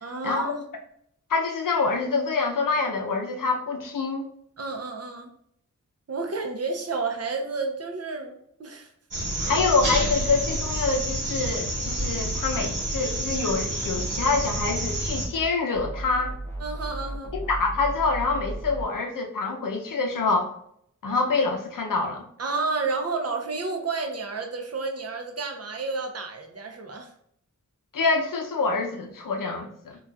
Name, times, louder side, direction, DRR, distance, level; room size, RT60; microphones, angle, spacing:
voice 1, 0.0-0.6 4.6-5.3 6.1-8.9 16.6-17.3 22.4-27.1, right 3 dB, 50° right, 4 dB, 0.6 m, -31 dB
voice 2, 1.3-4.3 9.5-16.3 17.3-20.5 21.0-22.3 27.9-29.7, left 4 dB, 90° left, 3 dB, 0.6 m, -26 dB
sound 1, 9.1-15.3, right 1 dB, 75° right, 1.0 m, -29 dB
Wobble Bass Test, 13.8-15.5 15.7-18.9, right 1 dB, 10° left, 0.5 m, -36 dB
3.9 x 2.4 x 2.3 m, 0.71 s
wide cardioid pair, 70°, 31 cm